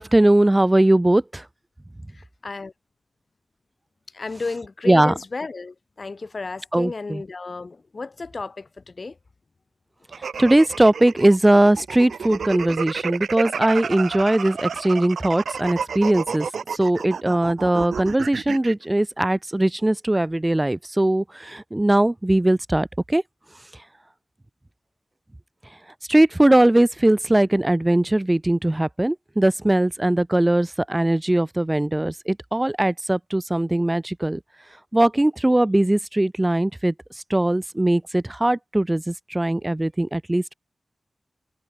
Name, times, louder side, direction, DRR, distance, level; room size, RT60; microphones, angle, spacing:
voice 1, 0.0-1.4 4.9-5.1 6.7-7.2 10.4-23.2 26.1-34.4 34.9-36.9 37.3-40.5, right 1 dB, 20° right, 2.1 m, -20 dB
voice 2, 2.1-2.7 4.1-9.2, left 3 dB, 50° left, 2.2 m, -33 dB
sound 1, 10.1-18.7, right 6 dB, 90° right, 5.0 m, -31 dB
cardioid pair, 60°, 0 cm